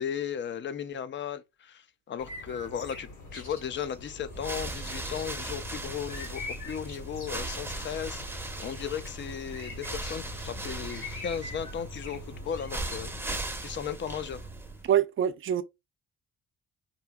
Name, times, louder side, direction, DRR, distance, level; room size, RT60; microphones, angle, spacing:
voice 1, 0.0-14.5, left 8 dB, 40° left, 0.4 m, -36 dB
sound 1, 2.2-13.2, left 3 dB, 70° left, 1.7 m, -44 dB
sound 2, 4.3-14.9, right 2 dB, 10° right, 0.6 m, -38 dB
voice 2, 14.8-15.6, right 10 dB, 45° right, 0.4 m, -25 dB
2.8 x 2.6 x 2.3 m
cardioid pair, 90°, 30 cm